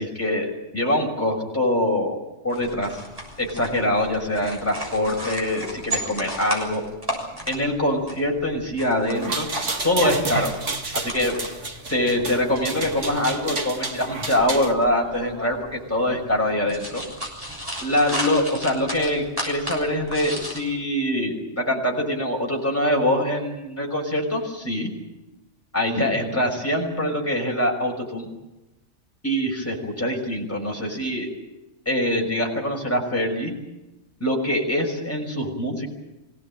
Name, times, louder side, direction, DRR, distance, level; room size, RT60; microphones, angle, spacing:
voice 1, 0.0-2.2 2.4-2.9 3.4-6.8 7.5-9.5 9.8-10.5 10.9-11.3 11.9-17.0 17.8-24.9 25.7-28.3 29.2-31.3 31.9-33.5 34.2-35.9, left 1 dB, 10° left, -1 dB, 5.7 m, -24 dB
sound 1, 2.5-20.6, equal, 20° right, 7.0 m, -35 dB
sound 2, 9.1-14.7, right 3 dB, 80° right, 2.5 m, -30 dB
25.5 x 17.5 x 8.9 m, 0.99 s
omnidirectional pair, 1.2 m